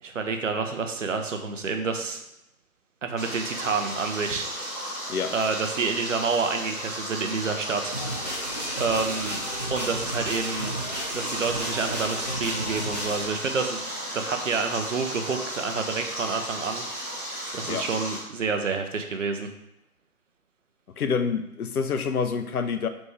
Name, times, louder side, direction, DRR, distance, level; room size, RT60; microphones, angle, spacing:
voice 1, 0.0-2.2 3.0-4.5 5.3-7.9 8.7-9.4 9.7-10.7 11.1-13.8 14.1-16.8 17.5-19.5, right 4 dB, 60° right, 5 dB, 0.6 m, -28 dB
Stream, 3.2-18.2, equal, 10° left, 0.9 m, -34 dB
sound 1, 7.9-13.3, equal, 30° left, 0.5 m, -33 dB
voice 2, 21.0-22.9, left 5 dB, 75° left, 8 dB, 0.6 m, -27 dB
4.1 x 3.1 x 3.3 m, 0.83 s
figure-of-eight pair, 160°, 44 cm